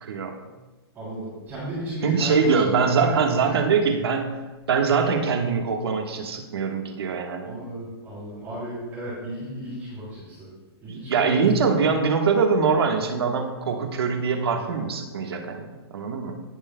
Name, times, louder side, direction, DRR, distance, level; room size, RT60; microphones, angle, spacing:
voice 1, 0.0-0.4 2.0-4.3 4.7-7.6 10.9-16.3, right 5 dB, 65° right, 3 dB, 1.5 m, -23 dB
voice 2, 0.9-3.1 7.4-10.5 10.8-11.4, right 1 dB, 15° right, -12 dB, 3.3 m, -34 dB
17.0 x 8.1 x 2.3 m, 1.2 s
hypercardioid pair, 180°, 14 cm